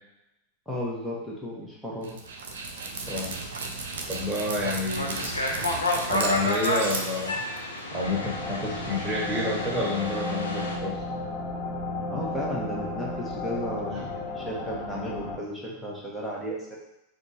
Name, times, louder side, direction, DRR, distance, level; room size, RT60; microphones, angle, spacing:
voice 1, 0.7-2.2 5.5-5.6 12.1-16.8, equal, ahead, -6 dB, 1.3 m, -34 dB
Dog, 2.0-7.8, right 3 dB, 60° right, 0.5 m, -35 dB
voice 2, 4.1-5.2 6.0-7.4 7.9-10.9 13.9-14.0, left 2 dB, 15° right, -5 dB, 1.6 m, -29 dB
sound 1, 4.9-10.8, left 1 dB, 80° left, 0.6 m, -31 dB
sound 2, 8.0-15.4, left 2 dB, 20° left, 1.6 m, -34 dB
4.3 x 2.6 x 4.2 m, 0.87 s
figure-of-eight pair, 90°, 0 cm